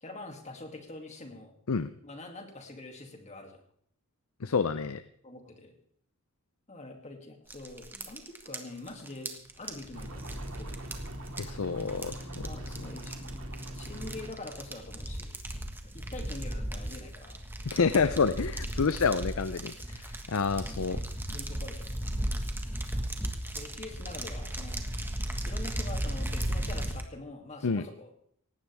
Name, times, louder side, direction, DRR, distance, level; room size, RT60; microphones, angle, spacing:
voice 1, 0.0-1.5 2.0-3.6 5.2-5.8 6.7-10.8 12.2-13.4 13.7-15.4 15.8-17.3 20.6-20.8 21.3-22.0 23.4-24.8 25.5-28.1, left 2 dB, 35° left, 4 dB, 2.6 m, -45 dB
voice 2, 4.4-5.0 11.4-12.5 17.7-21.0 27.6-27.8, left 5 dB, 85° left, 13 dB, 0.6 m, -28 dB
sound 1, 7.5-27.0, right 1 dB, 10° right, 1.6 m, -36 dB
sound 2, 9.9-14.3, right 1 dB, 80° right, 2.5 m, -42 dB
19.0 x 16.0 x 3.5 m, 0.64 s
head